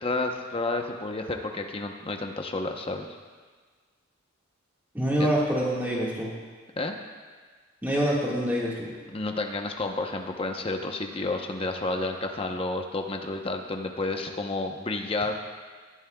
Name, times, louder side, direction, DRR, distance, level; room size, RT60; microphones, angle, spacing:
voice 1, 0.0-3.1 5.2-5.3 6.8-7.0 9.1-15.4, left 2 dB, 25° left, 3 dB, 0.8 m, -30 dB
voice 2, 4.9-6.3 7.8-8.9, equal, 10° right, -5 dB, 1.7 m, -26 dB
18.5 x 11.0 x 2.3 m, 1.5 s
head